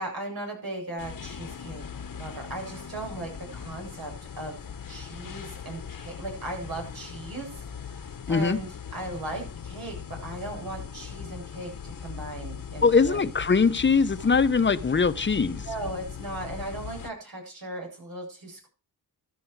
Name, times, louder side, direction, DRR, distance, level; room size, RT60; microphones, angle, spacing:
voice 1, 0.0-4.6 4.9-13.3 15.6-18.7, right 2 dB, 75° right, 7.8 m, -37 dB
sound 1, 1.0-17.1, left 7 dB, 60° left, 1.3 m, -40 dB
voice 2, 8.3-8.6 12.8-15.6, left 5 dB, 30° left, 1.0 m, -22 dB
13.5 x 10.5 x 4.8 m
cardioid pair, 75°, 37 cm